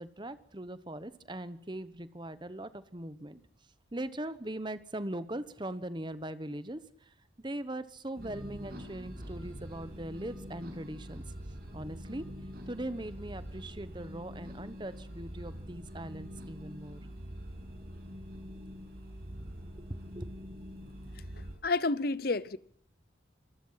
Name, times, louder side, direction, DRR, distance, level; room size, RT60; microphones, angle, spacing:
voice 1, 0.0-3.4 3.9-11.2 11.7-12.3 12.7-17.0 17.7-18.0 19.8-20.3, right 1 dB, 25° right, 1.1 m, -40 dB
sound 1, 8.1-21.5, equal, 55° right, 7.9 m, -44 dB
voice 2, 21.4-22.6, left 3 dB, 55° left, 0.8 m, -30 dB
25.5 x 19.5 x 5.8 m
head